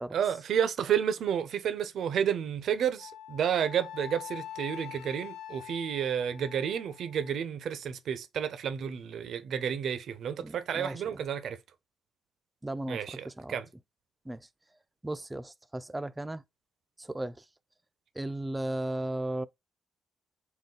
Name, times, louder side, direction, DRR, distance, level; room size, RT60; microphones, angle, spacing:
voice 1, 0.1-11.6 12.9-13.7, right 8 dB, 65° right, 0.6 m, -31 dB
Wind instrument woodwind instrument, 3.0-7.3, left 11 dB, 85° left, 0.3 m, -45 dB
voice 2, 10.4-11.2 12.6-13.6 14.3-14.4 15.0-16.4 17.0-17.4 18.2-19.5, right 1 dB, 15° right, 0.3 m, -36 dB
3.9 x 2.3 x 3.8 m
cardioid pair, 90°, 0 cm